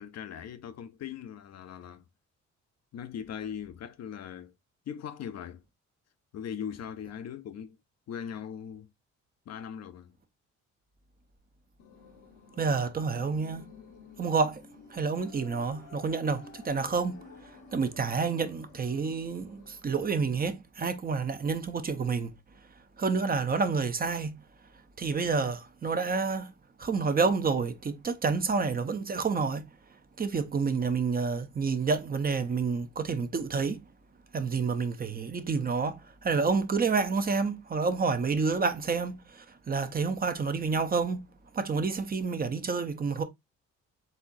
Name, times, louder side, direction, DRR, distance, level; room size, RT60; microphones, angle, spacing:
voice 1, 0.0-2.0 2.9-4.5 4.9-5.6 6.3-7.8 8.1-8.9 9.5-10.2, left 8 dB, 60° left, 0.6 m, -40 dB
sound 1, 11.8-19.8, left 5 dB, 80° left, 1.1 m, -52 dB
voice 2, 12.6-13.6 14.2-14.6 14.9-17.1 17.7-22.3 23.0-24.3 25.0-26.5 26.8-29.6 30.2-33.8 34.3-36.0 36.2-39.2 39.7-41.2 41.6-43.2, right 4 dB, 30° right, 0.6 m, -29 dB
4.2 x 3.6 x 2.4 m
cardioid pair, 90°, 30 cm